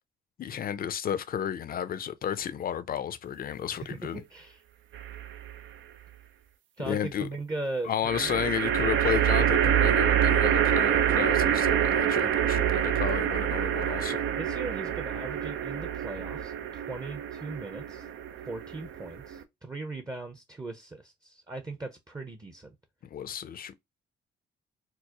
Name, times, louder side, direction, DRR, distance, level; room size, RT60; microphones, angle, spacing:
voice 1, 0.4-4.2 6.8-7.3 7.8-14.3 23.1-23.7, left 9 dB, 45° left, 0.5 m, -32 dB
voice 2, 3.7-4.6 6.8-7.9 8.2-8.4 14.3-18.1 18.4-22.8, right 2 dB, 20° right, 0.7 m, -39 dB
sound 1, 4.9-5.6 8.0-19.4, right 10 dB, 75° right, 0.6 m, -26 dB
4.6 x 2.0 x 2.9 m
cardioid pair, 90°, 20 cm